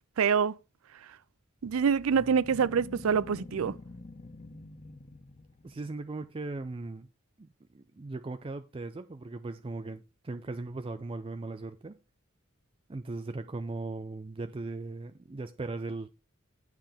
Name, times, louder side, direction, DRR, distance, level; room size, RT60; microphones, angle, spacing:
voice 1, 0.2-0.5 1.6-3.7, right 6 dB, 90° right, 0.4 m, -26 dB
sound 1, 1.6-6.0, left 2 dB, 30° left, 0.5 m, -48 dB
voice 2, 5.6-7.1 7.4-12.0 12.9-16.1, right 3 dB, 25° right, 0.4 m, -38 dB
9.0 x 7.5 x 3.5 m
head